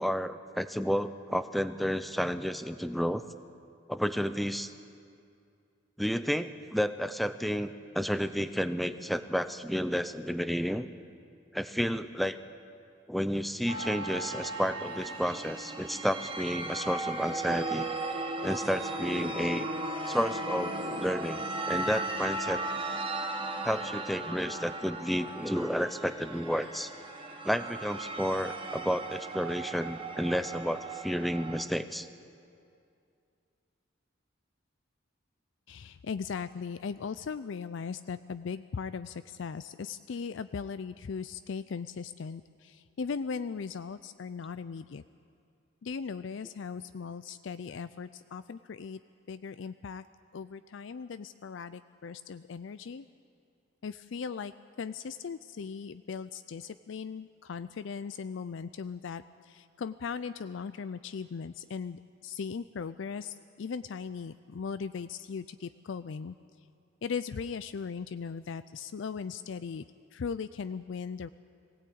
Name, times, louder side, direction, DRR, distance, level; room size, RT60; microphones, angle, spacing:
voice 1, 0.0-3.2 3.9-4.7 6.0-10.9 11.5-12.4 13.1-17.9 18.4-19.7 20.1-22.6 23.6-26.9 27.4-32.1, equal, ahead, 11 dB, 0.6 m, -31 dB
sound 1, 13.7-31.6, right 2 dB, 25° right, 1.2 m, -36 dB
voice 2, 35.7-45.0 45.8-49.0 49.3-50.0 50.3-53.1 53.8-54.5 54.8-66.4 67.0-69.8 70.1-71.3, left 5 dB, 70° left, 13 dB, 0.4 m, -38 dB
22.0 x 17.0 x 8.6 m, 2.4 s
head